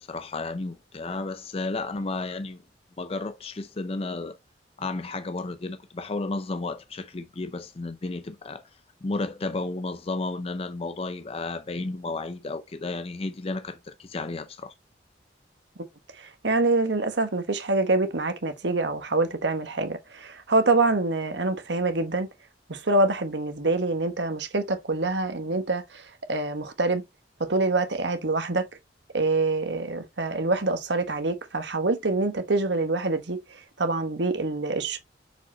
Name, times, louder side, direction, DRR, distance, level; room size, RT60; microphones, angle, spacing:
voice 1, 0.0-2.6 3.0-4.4 4.8-8.6 9.0-14.7, left 3 dB, 35° left, 0.5 m, -32 dB
voice 2, 16.2-22.3 22.7-27.0 27.4-28.7 29.1-35.0, right 2 dB, 75° right, 1.3 m, -25 dB
6.5 x 5.1 x 2.9 m
head